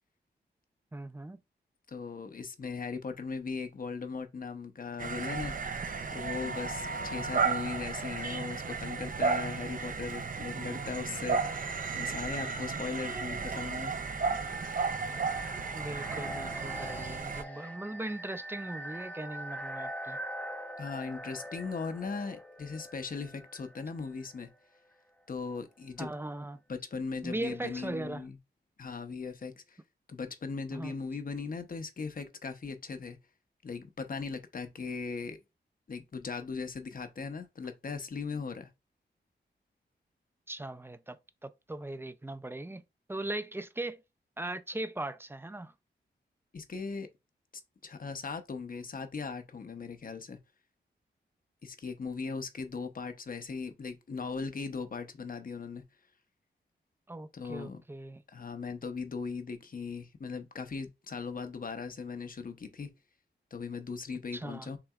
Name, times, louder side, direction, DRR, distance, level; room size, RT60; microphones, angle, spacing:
voice 1, 0.9-1.4 13.1-13.4 15.7-20.2 26.0-26.6 27.2-28.2 30.7-30.9 40.5-42.8 43.1-44.0 44.4-45.7 57.1-58.2 64.3-64.7, right 2 dB, 10° right, 0.5 m, -39 dB
voice 2, 1.9-5.6 6.1-11.4 11.9-13.9 20.8-24.5 25.3-26.1 26.7-28.4 28.8-29.8 30.1-33.2 33.6-35.4 35.9-38.7 46.5-47.1 47.8-50.4 51.6-55.8 57.3-57.8 58.3-62.9 63.5-64.8, left 5 dB, 50° left, 0.9 m, -38 dB
sound 1, 5.0-17.4, right 5 dB, 45° right, 0.6 m, -34 dB
sound 2, 13.6-24.4, equal, 10° left, 1.0 m, -43 dB
5.8 x 3.3 x 2.4 m
cardioid pair, 70°, 19 cm